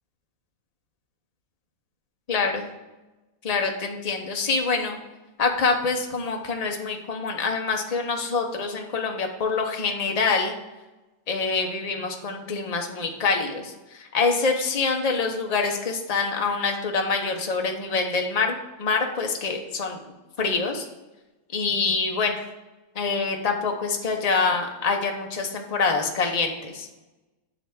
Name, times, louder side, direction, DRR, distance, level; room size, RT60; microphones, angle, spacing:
voice 1, 2.3-2.7 3.4-5.0 5.4-10.5 11.3-20.0 20.4-20.9 21.5-22.4 22.9-26.9, left 4 dB, 40° left, 2 dB, 0.5 m, -25 dB
9.8 x 3.4 x 7.0 m, 1.1 s
omnidirectional pair, 2.1 m